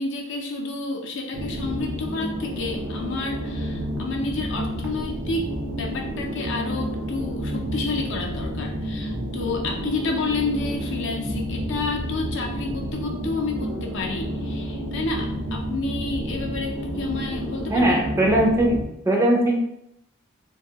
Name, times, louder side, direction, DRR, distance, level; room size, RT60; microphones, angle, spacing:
voice 1, 0.0-5.5 5.8-18.0, left 3 dB, 60° left, 1 dB, 0.5 m, -30 dB
sound 1, 1.3-18.9, equal, 80° right, 0.6 m, -30 dB
voice 2, 17.7-18.8 19.1-19.6, right 1 dB, 15° right, -1 dB, 0.4 m, -19 dB
2.7 x 2.3 x 2.8 m, 0.77 s
head